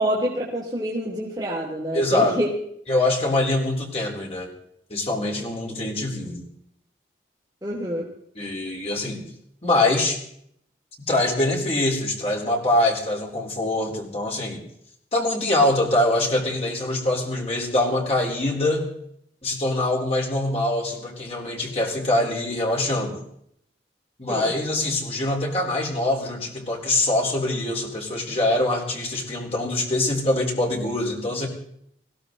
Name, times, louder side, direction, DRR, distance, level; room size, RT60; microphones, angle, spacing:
voice 1, 0.0-2.5 7.6-8.1 24.3-24.5, right 1 dB, 20° right, -5 dB, 2.9 m, -26 dB
voice 2, 1.9-2.3 2.9-4.5 4.9-6.5 8.4-9.2 9.6-10.2 11.1-14.6 15.1-18.9 19.4-23.2 24.2-31.5, left 2 dB, 35° left, -1 dB, 4.1 m, -24 dB
21.0 x 16.5 x 4.0 m, 0.68 s
head